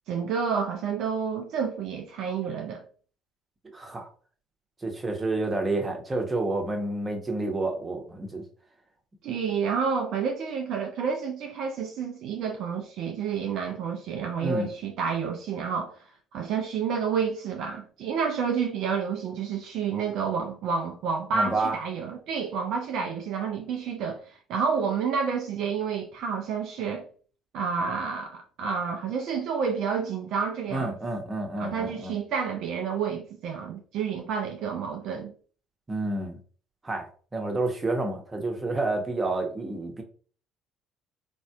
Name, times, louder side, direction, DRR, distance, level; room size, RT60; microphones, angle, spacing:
voice 1, 0.1-2.8 9.2-16.0 16.3-27.1 27.5-31.0 31.6-35.3, right 6 dB, 60° right, 0.5 m, -29 dB
voice 2, 3.7-4.1 4.8-8.4 14.4-14.7 21.3-21.8 30.7-32.1 35.9-36.4 36.8-40.0, right 2 dB, 25° right, 1.0 m, -29 dB
4.0 x 2.6 x 2.3 m
figure-of-eight pair, 55°, 0 cm